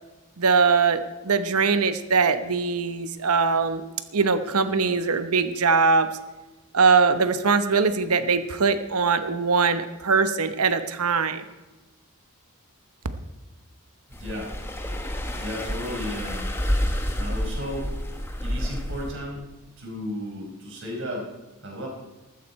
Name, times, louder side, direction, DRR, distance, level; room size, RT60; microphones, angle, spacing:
voice 1, 0.4-3.8 4.1-6.1 6.7-11.4, right 4 dB, 80° right, 10 dB, 1.0 m, -21 dB
sound 1, 14.1-19.1, equal, 10° left, 1.2 m, -29 dB
voice 2, 14.2-14.5 15.3-16.5 17.2-17.9 18.4-19.4 19.8-21.3 21.6-21.9, equal, 60° right, -1 dB, 5.0 m, -34 dB
14.5 x 13.5 x 4.4 m, 1.1 s
head